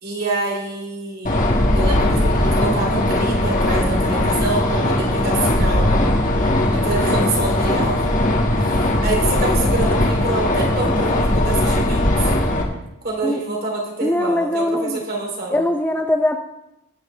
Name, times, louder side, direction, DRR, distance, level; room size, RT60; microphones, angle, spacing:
voice 1, 0.0-1.5 1.7-5.9 6.7-8.1 8.6-12.3 13.0-15.7, right 2 dB, 45° right, 0 dB, 3.0 m, -27 dB
sound 1, 1.2-12.6, left 1 dB, 35° left, 1.7 m, -19 dB
voice 2, 14.0-15.0 15.5-16.4, left 1 dB, 10° left, 4 dB, 0.5 m, -21 dB
22.5 x 8.7 x 3.3 m, 0.90 s
head